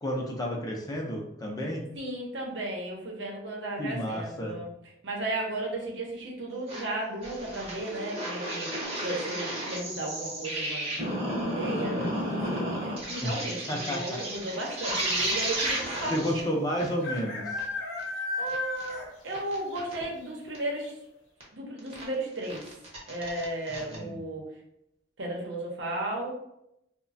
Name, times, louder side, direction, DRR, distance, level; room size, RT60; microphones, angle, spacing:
voice 1, 0.0-1.9 3.8-4.6 13.2-13.3 13.7-14.2 16.1-17.6 23.9-24.2, equal, 20° left, 0 dB, 0.4 m, -31 dB
voice 2, 1.9-4.7 5.0-11.0 11.4-16.4 18.4-20.9 21.5-22.6 23.1-24.4 25.2-26.3, right 1 dB, 80° right, -1 dB, 0.8 m, -35 dB
sound 1, 6.7-6.8 7.2-16.4 16.8-16.9 17.2-17.3 17.6-17.7 18.0-18.1 18.5-18.9 19.3-20.0 20.5-20.6 21.4-21.5 21.8-22.0 22.4-23.9, right 1 dB, 35° right, 0.8 m, -33 dB
sound 2, 9.5-9.9 11.8-12.1 12.4-12.5 12.7-13.3 14.0-14.1 14.3-14.4 16.0-16.1 17.0-19.3 19.7-19.8 20.2-20.3 20.8-20.9, left 3 dB, 90° left, 0.7 m, -35 dB
3.0 x 2.1 x 2.5 m, 0.79 s
head